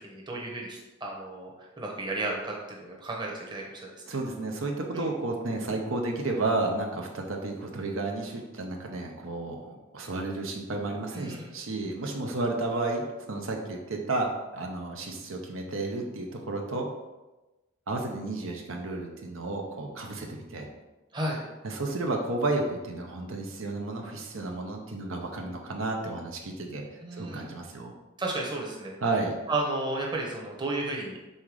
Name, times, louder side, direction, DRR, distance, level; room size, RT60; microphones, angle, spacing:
voice 1, 0.0-3.9 4.9-5.1 11.1-11.5 21.1-21.4 27.0-27.5 28.2-29.0 29.5-31.2, right 2 dB, 20° right, -2 dB, 1.0 m, -33 dB
voice 2, 4.1-16.9 17.9-20.7 21.6-27.9 29.0-29.4, right 2 dB, 70° right, 1 dB, 0.8 m, -32 dB
5.6 x 3.8 x 4.8 m, 1.1 s
head